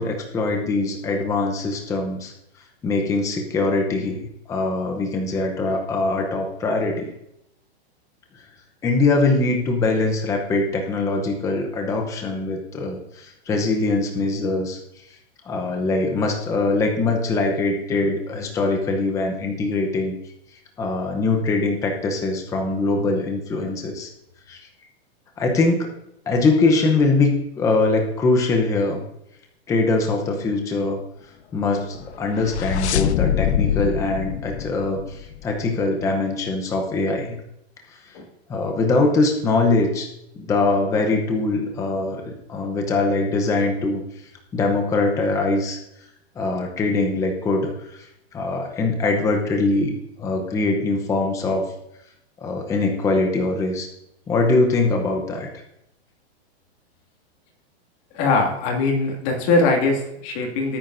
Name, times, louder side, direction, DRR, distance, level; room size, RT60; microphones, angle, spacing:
voice 1, 0.0-2.3 2.8-7.1 8.8-14.8 15.4-20.2 20.8-24.1 24.5-24.6 25.4-25.9 26.3-29.0 29.7-31.0 31.5-37.4 37.9-38.0 38.5-40.1 40.4-44.0 44.5-45.8 46.4-48.1 48.3-51.6 52.4-53.9 54.3-55.5, left 3 dB, 10° left, 3 dB, 0.7 m, -22 dB
sound 1, 32.0-35.6, left 10 dB, 90° left, 0.7 m, -24 dB
voice 2, 58.1-60.8, left 3 dB, 35° left, 1 dB, 2.3 m, -21 dB
18.0 x 9.2 x 2.6 m, 0.81 s
supercardioid pair, 160°, 33 cm